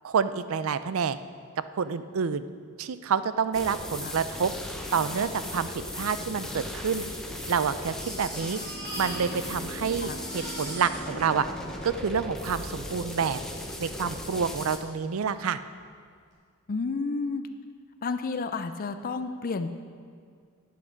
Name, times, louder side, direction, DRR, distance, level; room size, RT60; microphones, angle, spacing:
voice 1, 0.0-1.2 1.7-2.4 2.8-4.5 4.9-7.0 7.5-8.6 9.0-11.5 11.8-13.4 13.8-15.6, right 6 dB, 75° right, 13 dB, 0.5 m, -28 dB
sound 1, 3.5-14.8, left 1 dB, 5° left, 0.8 m, -37 dB
Crying sobbing, 5.9-6.0 6.8-9.7 9.9-12.5 13.3-13.4 13.8-13.9, right 1 dB, 55° right, 3.4 m, -43 dB
Bowed string instrument, 8.0-12.8, right 1 dB, 55° left, 1.3 m, -45 dB
voice 2, 16.7-17.4 18.0-19.9, left 4 dB, 40° left, 8 dB, 0.4 m, -31 dB
12.0 x 8.6 x 5.1 m, 2.1 s
head